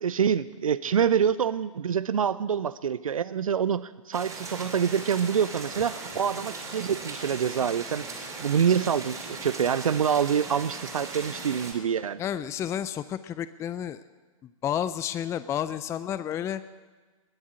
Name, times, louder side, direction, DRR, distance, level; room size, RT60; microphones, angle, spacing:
voice 1, 0.0-8.1 8.4-12.2, right 7 dB, 75° right, 16 dB, 0.5 m, -26 dB
sound 1, 4.1-11.7, right 3 dB, 20° right, 3.6 m, -38 dB
voice 2, 12.2-14.0 14.6-16.6, left 10 dB, 15° left, 14 dB, 0.4 m, -31 dB
20.5 x 7.3 x 8.9 m, 1.3 s
figure-of-eight pair, 105°, 18 cm